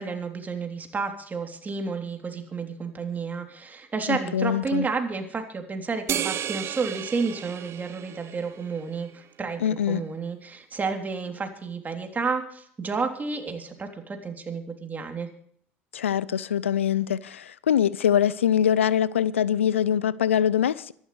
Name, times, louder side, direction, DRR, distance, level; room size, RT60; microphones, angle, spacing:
voice 1, 0.0-15.3, right 4 dB, 25° right, 3.4 m, -31 dB
voice 2, 4.1-4.9 9.6-10.0 15.9-20.9, left 9 dB, 85° left, 0.5 m, -23 dB
sound 1, 6.1-8.8, right 10 dB, 40° right, 0.8 m, -33 dB
24.5 x 12.0 x 3.3 m
hypercardioid pair, 70°, 7 cm